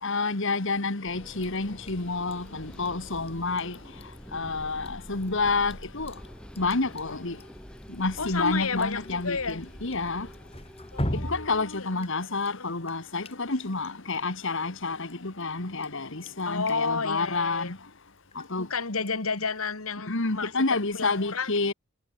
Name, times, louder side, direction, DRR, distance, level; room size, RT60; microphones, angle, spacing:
voice 1, 0.0-3.8 4.3-6.2 6.6-7.4 7.9-10.3 11.1-17.8 18.4-18.7 20.1-21.7, left 3 dB, 60° left, 2.1 m, -29 dB
sound 1, 1.0-11.3, equal, 5° left, 4.0 m, -46 dB
Drip, 1.4-19.6, equal, 30° left, 5.6 m, -43 dB
voice 2, 8.2-9.6 10.9-12.1 12.5-12.7 16.5-17.8 18.6-21.5, left 4 dB, 80° left, 2.5 m, -31 dB
head